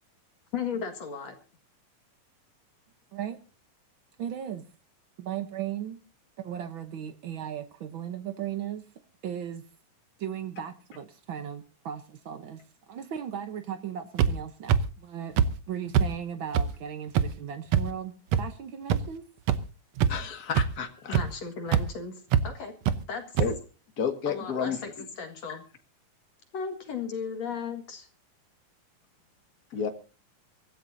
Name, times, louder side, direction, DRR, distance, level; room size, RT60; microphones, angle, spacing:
voice 1, 0.5-1.3 21.1-22.1 22.4-22.7 23.1-23.4 24.3-24.8 25.2-25.6 26.5-28.1, left 6 dB, 55° left, 4 dB, 2.8 m, -35 dB
voice 2, 4.2-4.6 5.2-6.0 6.4-8.9 9.2-9.6 10.2-12.6 12.9-15.4 15.7-19.3, right 9 dB, 85° right, 8 dB, 1.1 m, -36 dB
sound 1, 14.2-14.3 14.7-14.8 15.4-15.5 15.9-16.1 16.5-16.6 17.1-17.3 17.7-17.8 18.3-18.4 18.9-19.0 19.5-19.6 20.0-20.2 20.5-20.7 21.1-21.2 21.7-21.8 22.3-22.4 22.9-23.0 23.4-23.5, right 8 dB, 70° right, 1.7 m, -21 dB
voice 3, 20.1-21.2 23.4-23.5 24.0-24.8 25.5-25.6 29.7-29.9, left 6 dB, 35° left, 5 dB, 1.7 m, -31 dB
24.0 x 14.5 x 2.7 m, 0.34 s
omnidirectional pair, 3.8 m